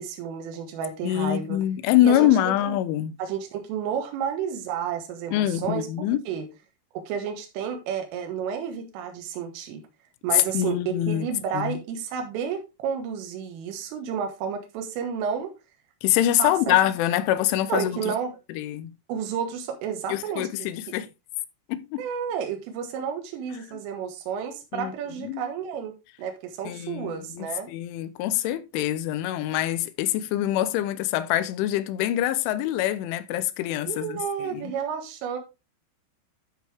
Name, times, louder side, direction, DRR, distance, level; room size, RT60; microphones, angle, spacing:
voice 1, 0.0-1.6 2.0-2.8 3.2-5.9 6.3-6.5 6.9-9.8 10.2-15.5 16.4-16.8 17.7-18.4 19.1-20.7 22.0-25.9 26.2-27.7 33.9-35.4, right 7 dB, 85° right, 4.0 m, -31 dB
voice 2, 1.0-3.1 5.3-6.2 10.3-11.3 11.5-11.8 16.0-18.1 18.6-18.9 20.1-21.1 21.7-22.0 24.7-24.9 25.2-25.4 26.7-34.7, left 13 dB, 85° left, 3.0 m, -25 dB
12.5 x 4.8 x 3.4 m
omnidirectional pair, 5.6 m